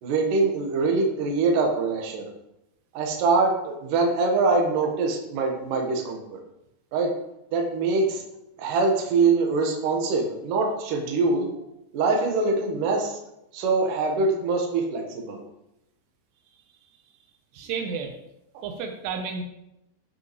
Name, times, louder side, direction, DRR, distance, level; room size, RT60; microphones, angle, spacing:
voice 1, 0.0-2.3 2.9-6.4 6.9-7.1 7.5-8.3 8.6-11.5 11.9-13.2 13.5-15.4, right 3 dB, 65° right, 1 dB, 2.4 m, -24 dB
voice 2, 17.5-18.1 18.6-19.4, right 5 dB, 85° right, 4 dB, 2.8 m, -31 dB
12.0 x 5.4 x 3.1 m, 0.87 s
omnidirectional pair, 5.0 m